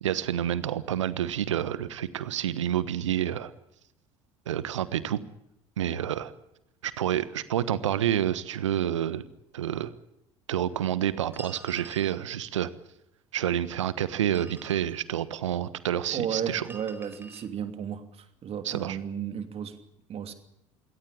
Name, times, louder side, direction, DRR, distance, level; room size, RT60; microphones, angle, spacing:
voice 1, 0.0-3.5 4.5-5.2 5.8-6.3 6.8-9.2 9.5-9.9 10.5-12.7 13.3-16.6 18.6-19.0, right 11 dB, 75° right, 17 dB, 1.2 m, -28 dB
sound 1, 11.3-12.2 14.1-15.0 16.6-17.5, right 3 dB, 15° right, 4.3 m, -47 dB
voice 2, 16.1-19.7 20.1-20.3, right 8 dB, 40° right, 8 dB, 2.9 m, -34 dB
23.0 x 17.5 x 8.9 m, 0.81 s
figure-of-eight pair, 65°, 16 cm